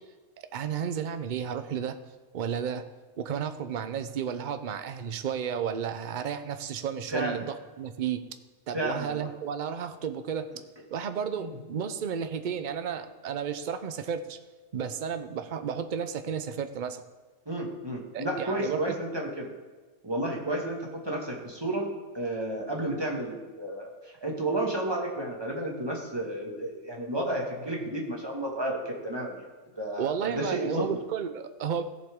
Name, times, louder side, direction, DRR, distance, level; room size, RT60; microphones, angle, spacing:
voice 1, 0.5-2.0 2.3-2.8 3.2-7.5 7.8-8.2 8.7-10.5 10.9-14.4 14.7-17.0 18.1-19.0 30.0-31.8, right 7 dB, 55° right, 9 dB, 0.5 m, -32 dB
voice 2, 7.1-7.4 8.7-9.3 11.4-11.5 17.5-19.5 20.0-21.9 22.1-23.9 24.2-29.4 29.8-30.8, right 1 dB, 15° right, -1 dB, 1.9 m, -32 dB
16.5 x 7.4 x 3.7 m, 1.3 s
omnidirectional pair, 1.6 m